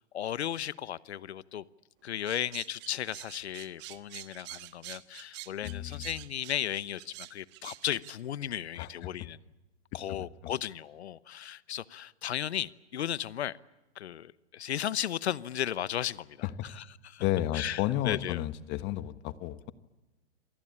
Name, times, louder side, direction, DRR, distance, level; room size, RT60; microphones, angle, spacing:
voice 1, 0.1-1.6 2.0-9.4 9.9-13.6 14.0-17.2 17.5-18.4, left 10 dB, 75° left, 1.0 m, -35 dB
sound 1, 2.2-8.1, right 18 dB, 35° right, 1.3 m, -46 dB
voice 2, 5.6-6.1 8.8-8.9 10.1-10.2 10.4-10.5 16.4-16.5 17.2-19.7, left 14 dB, 35° left, 1.4 m, -32 dB
27.0 x 19.5 x 8.5 m
hypercardioid pair, 120°, 33 cm